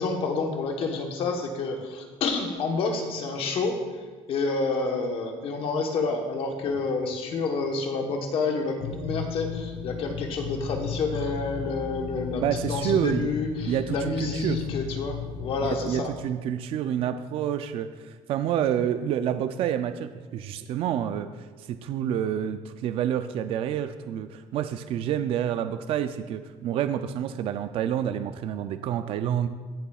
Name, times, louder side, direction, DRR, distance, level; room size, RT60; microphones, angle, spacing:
voice 1, 0.0-3.8 4.3-16.1, left 4 dB, 45° left, 3 dB, 1.1 m, -29 dB
sound 1, 8.8-15.9, left 6 dB, 70° left, 1.8 m, -35 dB
voice 2, 12.4-13.3 13.7-14.6 15.7-29.5, right 10 dB, 50° right, 10 dB, 0.4 m, -28 dB
17.0 x 7.0 x 2.4 m, 1.5 s
cardioid pair, 170°, 13 cm